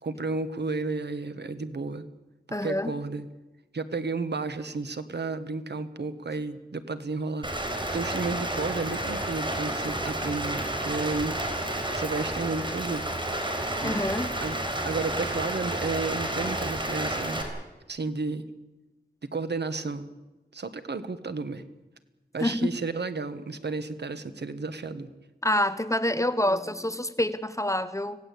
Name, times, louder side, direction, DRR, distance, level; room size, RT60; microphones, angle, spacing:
voice 1, 0.0-2.1 2.5-3.3 3.7-13.3 13.8-14.0 14.4-17.4 17.9-18.4 19.2-20.1 20.5-21.6 22.3-25.1, right 3 dB, 90° right, 1.6 m, -32 dB
voice 2, 2.5-2.9 13.8-14.3 22.4-22.6 25.4-28.2, left 1 dB, 20° left, 1.0 m, -27 dB
Rain, 7.4-17.4, right 1 dB, 30° right, 4.8 m, -31 dB
26.0 x 17.0 x 8.6 m
wide cardioid pair, 80°, 17 cm